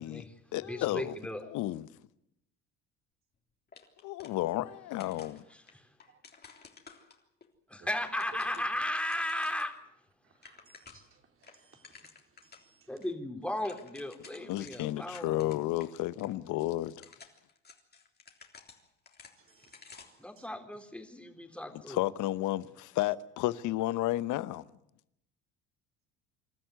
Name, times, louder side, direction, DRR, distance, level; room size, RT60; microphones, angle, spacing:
voice 1, 0.0-1.4 5.5-6.0 7.7-9.8 12.9-15.5 20.2-22.0, left 1 dB, 5° left, 3.6 m, -36 dB
voice 2, 0.5-1.1 1.5-1.9 4.0-5.4 14.5-16.9 21.9-24.6, left 15 dB, 60° left, 1.0 m, -32 dB
sound 1, 3.7-4.7 5.0-7.5 7.9-9.7 10.1-10.2 10.3-11.1 11.4-12.7 13.0-13.1 13.4-15.9 16.2-16.3 16.8-20.3, left 5 dB, 30° left, 3.5 m, -54 dB
voice 3, 10.2-12.9 19.4-20.5, right 5 dB, 40° right, 3.8 m, -64 dB
26.5 x 13.0 x 9.5 m
hypercardioid pair, 75°, 34 cm